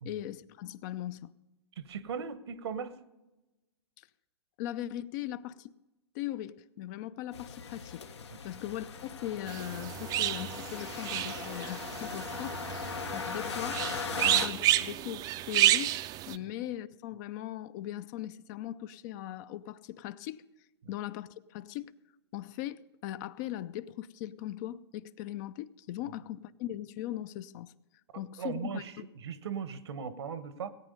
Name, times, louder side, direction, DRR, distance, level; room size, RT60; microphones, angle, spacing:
voice 1, 0.0-1.3 4.0-4.1 4.6-5.7 6.1-8.0 8.4-12.6 13.1-13.9 14.2-20.4 20.9-21.9 22.3-27.7 28.2-29.1, left 13 dB, 40° left, 0.5 m, -39 dB
voice 2, 1.8-3.0 14.1-14.2 20.8-20.9 28.4-30.7, right 6 dB, 70° right, 1.1 m, -38 dB
sound 1, 7.3-14.5, left 6 dB, 85° left, 1.3 m, -39 dB
sound 2, 9.5-16.4, right 13 dB, 30° right, 0.5 m, -30 dB
17.5 x 8.8 x 5.3 m
hypercardioid pair, 120°, 14 cm